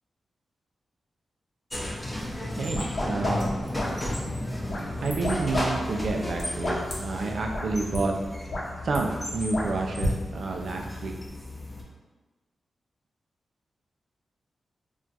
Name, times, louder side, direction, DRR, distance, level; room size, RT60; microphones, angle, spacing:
sound 1, 1.7-11.8, left 1 dB, 15° left, 0.7 m, -34 dB
sound 2, 2.5-4.2 4.7-5.7 5.9-6.9 7.5-7.6 7.9-8.0 8.4-9.0 9.5-10.1, left 1 dB, 65° left, 0.8 m, -31 dB
voice 1, 2.6-3.6 5.0-8.1 8.8-11.1, right 3 dB, 75° right, 1 dB, 0.4 m, -29 dB
2.3 x 2.3 x 3.9 m, 1.2 s
cardioid pair, 50°, 0 cm